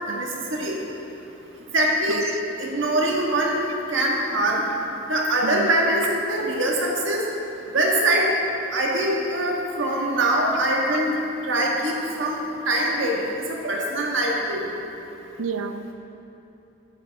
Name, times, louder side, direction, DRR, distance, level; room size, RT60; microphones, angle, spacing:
voice 1, 0.1-0.7 1.7-2.2 2.6-4.6 5.1-7.2 7.7-8.3 8.7-11.2 11.5-12.4 12.7-13.2 13.6-14.6, right 1 dB, 65° right, -2 dB, 1.5 m, -23 dB
voice 2, 15.4-15.9, right 5 dB, 85° right, 10 dB, 0.5 m, -31 dB
11.5 x 8.8 x 3.5 m, 2.9 s
head